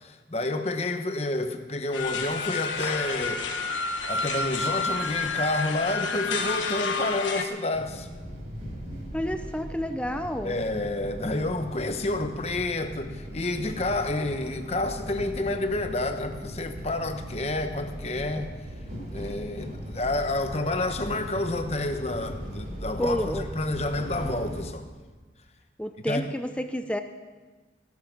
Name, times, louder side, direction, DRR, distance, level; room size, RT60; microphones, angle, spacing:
voice 1, 0.0-3.5 4.1-8.1 10.4-18.5 19.1-24.9 26.1-26.3, left 2 dB, 35° left, 7 dB, 1.0 m, -29 dB
sound 1, 1.9-7.4, left 4 dB, 80° left, 1.4 m, -29 dB
sound 2, 7.7-24.6, equal, 40° right, 5.8 m, -38 dB
voice 2, 9.1-10.6 23.0-23.5 25.8-27.0, equal, 5° left, 8 dB, 0.5 m, -29 dB
16.5 x 11.5 x 6.1 m, 1.3 s
head